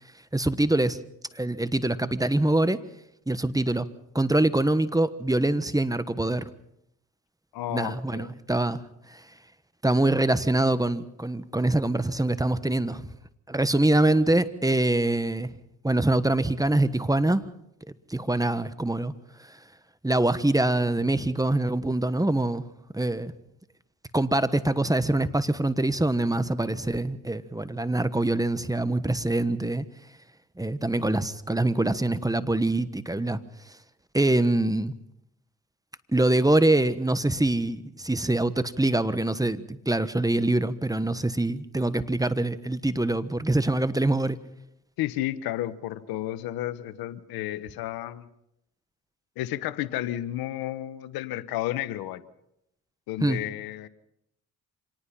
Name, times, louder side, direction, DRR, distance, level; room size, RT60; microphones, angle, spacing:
voice 1, 0.3-1.0 1.3-2.8 3.3-3.9 4.1-6.5 7.7-8.8 9.1-9.2 9.8-13.1 13.5-15.5 15.8-17.4 18.1-19.1 19.4-19.6 20.0-22.6 22.9-23.3 24.1-29.8 30.6-33.4 34.1-34.9 36.1-44.4 53.2-53.4, right 2 dB, 10° right, 1.3 m, -24 dB
voice 2, 7.5-8.3 45.0-48.3 49.4-52.2 53.1-53.9, left 14 dB, 90° left, 1.0 m, -32 dB
26.0 x 19.0 x 5.8 m
supercardioid pair, 60°, 35 cm